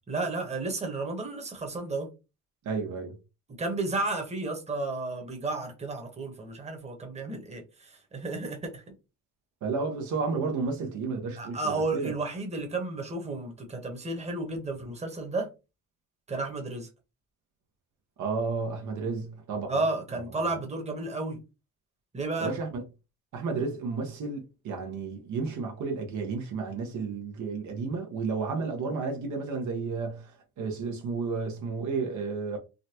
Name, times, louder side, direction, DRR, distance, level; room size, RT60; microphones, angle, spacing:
voice 1, 0.1-2.1 3.6-8.9 11.4-15.5 16.3-16.9 19.7-21.4 22.1-22.5, right 2 dB, 20° right, 1.1 m, -32 dB
voice 2, 2.6-3.1 9.6-12.1 18.2-19.8 20.1-20.2 22.4-22.8 23.3-30.3 30.6-32.6, right 4 dB, 75° right, 1.0 m, -32 dB
3.8 x 2.2 x 2.9 m
cardioid pair, 90°, 30 cm